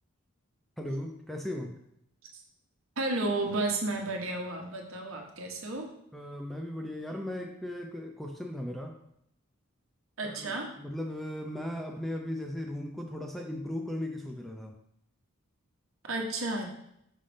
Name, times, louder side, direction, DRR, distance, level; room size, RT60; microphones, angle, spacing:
voice 1, 0.8-1.8 6.1-9.0 10.2-14.8, left 1 dB, ahead, 2 dB, 0.4 m, -37 dB
voice 2, 3.0-5.9 10.2-10.7 16.0-16.7, right 2 dB, 70° right, 2 dB, 1.1 m, -32 dB
5.6 x 5.1 x 3.4 m, 0.75 s
head